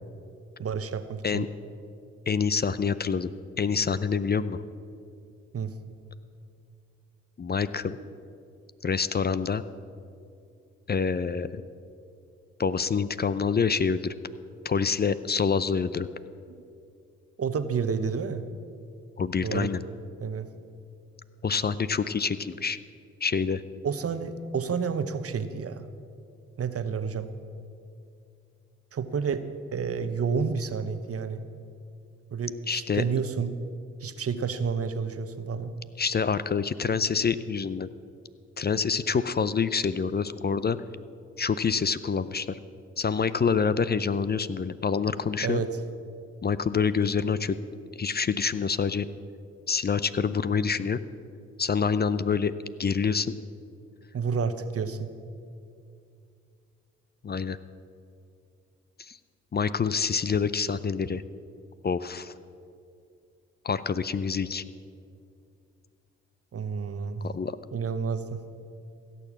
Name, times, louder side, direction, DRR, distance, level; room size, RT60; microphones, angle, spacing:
voice 1, 0.6-1.5 5.5-5.7 16.5-16.6 17.4-18.4 19.4-19.7 20.2-20.5 23.8-25.8 26.6-27.3 28.9-29.4 29.7-31.4 32.3-33.5 34.0-35.7 45.4-45.7 54.1-55.1 66.5-67.2 67.7-68.4, right 6 dB, 50° right, 10 dB, 1.0 m, -30 dB
voice 2, 2.3-3.3 3.6-4.6 7.4-8.0 8.8-9.6 10.9-11.6 12.6-14.1 14.6-16.1 19.2-19.8 21.4-22.8 23.2-23.6 32.7-33.0 36.0-37.9 38.6-40.8 41.4-42.6 43.0-45.6 46.4-47.6 47.9-49.1 49.7-51.0 51.6-52.5 52.8-53.4 57.2-57.6 59.0-59.2 59.5-61.2 61.8-62.3 63.6-64.6 67.2-67.6, left 5 dB, 35° left, 15 dB, 0.5 m, -26 dB
16.5 x 6.9 x 7.3 m, 2.4 s
supercardioid pair, 45°, 30 cm